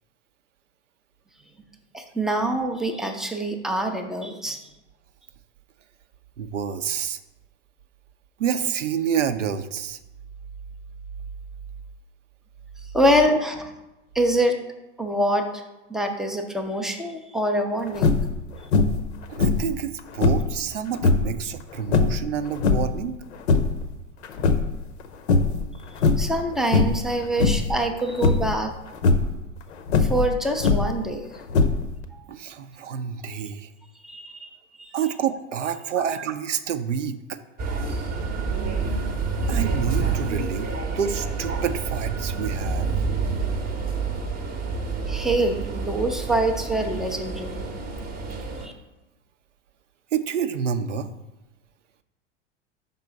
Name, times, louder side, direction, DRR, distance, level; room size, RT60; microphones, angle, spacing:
voice 1, 1.9-4.7 12.9-13.7 14.1-14.6 15.0-15.6 15.9-18.2 26.2-28.7 30.0-31.3 32.1-32.2 34.0-34.5 34.8-35.0 45.1-47.6 48.6-48.7, right 1 dB, ahead, 3 dB, 0.3 m, -25 dB
voice 2, 6.4-7.2 8.4-10.0 19.3-23.2 32.3-33.7 34.9-37.4 39.5-42.9 50.1-51.1, right 8 dB, 75° right, 10 dB, 0.6 m, -28 dB
sound 1, 17.9-18.4 18.7-19.1 19.4-20.5 21.0-21.3 21.9-23.0 23.3-23.9 24.2-25.0 25.3-25.7 26.0-26.4 26.7-27.1 27.4-27.8 28.2-28.6 28.9-29.3 29.9-31.0 31.5-32.0, left 4 dB, 65° left, 0.6 m, -21 dB
sound 2, 37.6-48.7, right 4 dB, 25° right, 0.7 m, -28 dB
5.3 x 3.7 x 5.5 m, 0.99 s
figure-of-eight pair, 85°, 36 cm